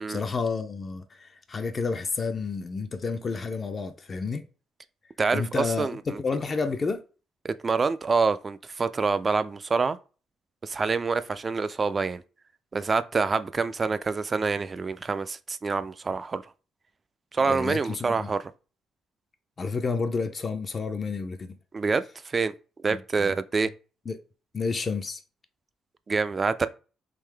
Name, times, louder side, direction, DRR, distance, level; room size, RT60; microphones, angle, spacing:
voice 1, 0.0-4.5 5.3-7.0 17.4-18.3 19.6-21.6 22.9-23.3 24.1-24.2 24.5-25.2, left 4 dB, 40° left, 0.4 m, -30 dB
voice 2, 5.2-6.2 7.4-10.0 10.6-12.2 12.7-16.4 17.3-18.5 21.7-22.5 22.8-23.7 26.1-26.7, right 4 dB, 35° right, 0.3 m, -26 dB
3.7 x 2.7 x 3.3 m
cardioid pair, 75°, 0 cm